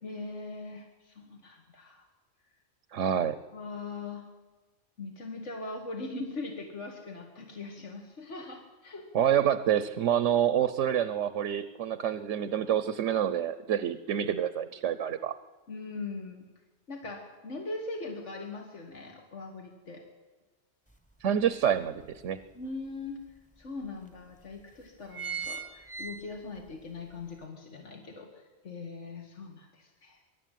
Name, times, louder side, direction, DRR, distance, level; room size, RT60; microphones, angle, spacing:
voice 1, 0.0-2.0 3.5-4.2 5.0-9.0 14.2-14.3 15.7-16.4 16.9-20.0 22.5-23.2 23.6-30.2, left 3 dB, 80° left, 2 dB, 2.3 m, -41 dB
voice 2, 2.9-3.4 9.1-15.3 21.2-22.4, right 9 dB, 85° right, 14 dB, 1.1 m, -27 dB
sound 1, 20.9-21.0 21.5-22.6 23.3-23.4 23.6-23.7 24.4-24.6 24.9-26.7 27.1-27.2, right 6 dB, 5° left, 1.1 m, -39 dB
23.5 x 12.0 x 9.2 m, 1.3 s
omnidirectional pair, 1.2 m